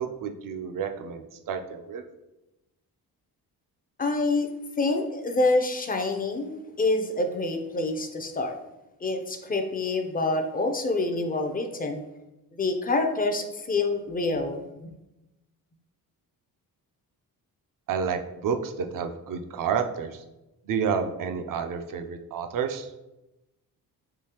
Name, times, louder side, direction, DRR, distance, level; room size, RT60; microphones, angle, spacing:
voice 1, 0.0-2.0 17.9-20.2 20.7-22.9, right 6 dB, 60° right, 6 dB, 0.5 m, -30 dB
voice 2, 4.0-8.6 9.0-12.0 12.5-14.9, left 2 dB, 25° left, 5 dB, 0.5 m, -27 dB
3.7 x 2.7 x 2.9 m, 0.97 s
cardioid pair, 75°, 38 cm